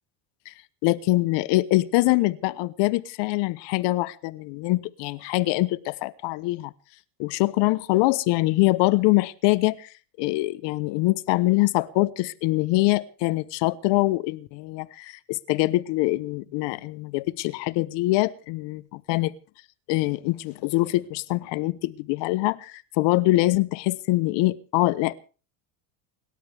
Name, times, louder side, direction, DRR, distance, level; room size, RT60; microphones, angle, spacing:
voice 1, 0.8-6.7 7.2-9.9 10.2-18.8 19.1-19.3 19.9-25.1, left 20 dB, 60° left, 17 dB, 1.0 m, -24 dB
29.0 x 12.5 x 3.5 m, 0.35 s
supercardioid pair, 130°, 46 cm